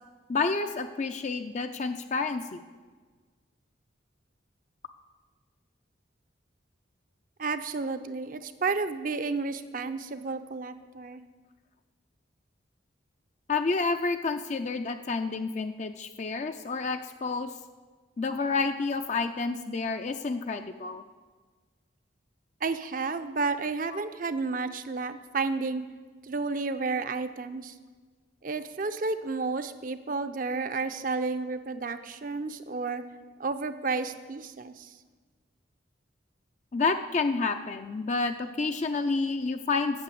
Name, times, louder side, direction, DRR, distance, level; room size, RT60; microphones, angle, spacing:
voice 1, 0.3-2.6 13.5-17.5 18.2-21.0 36.7-40.0, left 4 dB, 35° left, 7 dB, 0.4 m, -29 dB
voice 2, 7.4-11.2 22.6-25.8 26.2-27.7 28.4-33.0 33.4-34.9, right 4 dB, 45° right, 10 dB, 0.5 m, -31 dB
8.8 x 6.9 x 8.4 m, 1.4 s
head